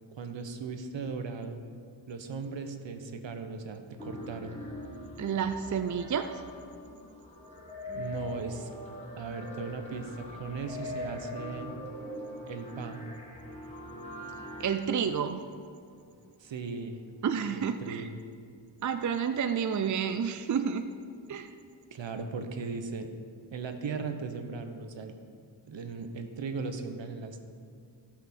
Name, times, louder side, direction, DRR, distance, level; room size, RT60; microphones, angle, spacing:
voice 1, 0.2-1.6 2.1-4.6 7.9-8.7 9.2-11.7 12.5-13.1 16.4-17.0 17.5-18.2 21.9-23.1 23.5-25.1 25.7-27.4, right 4 dB, 70° right, 7 dB, 1.1 m, -37 dB
sound 1, 4.0-14.7, left 1 dB, 15° left, 2.1 m, -42 dB
voice 2, 5.2-6.4 14.6-15.5 17.2-18.1 18.8-20.8 21.3-21.5, right 7 dB, 40° right, 8 dB, 0.5 m, -30 dB
sound 2, 9.1-17.8, left 4 dB, 45° left, 2.2 m, -53 dB
18.0 x 6.0 x 4.4 m, 2.3 s
wide cardioid pair, 95°, 46 cm